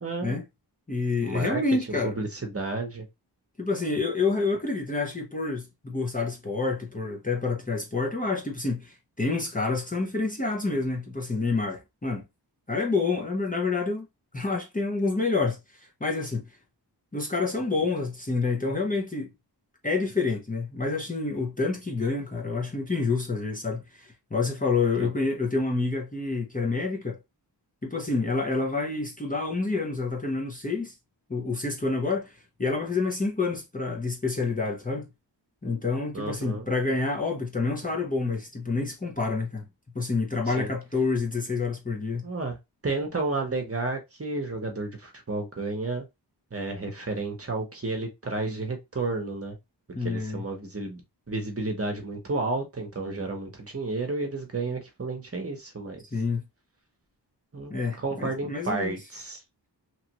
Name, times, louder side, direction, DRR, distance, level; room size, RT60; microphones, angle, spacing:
voice 1, 0.0-0.4 1.2-1.6 1.9-3.1 25.0-25.1 36.1-36.7 40.5-40.7 42.2-42.6 42.8-46.0 46.5-49.6 50.0-56.0 57.5-59.4, right 3 dB, 35° right, 0.9 m, -32 dB
voice 2, 0.9-2.2 3.6-12.2 12.7-14.1 14.3-16.5 17.1-19.3 19.8-27.2 27.8-30.9 31.3-35.1 35.6-39.7 39.9-42.3 49.9-50.4 56.1-56.4 57.7-59.0, left 3 dB, 20° left, 0.7 m, -28 dB
3.0 x 2.5 x 2.9 m
wide cardioid pair, 80°, 42 cm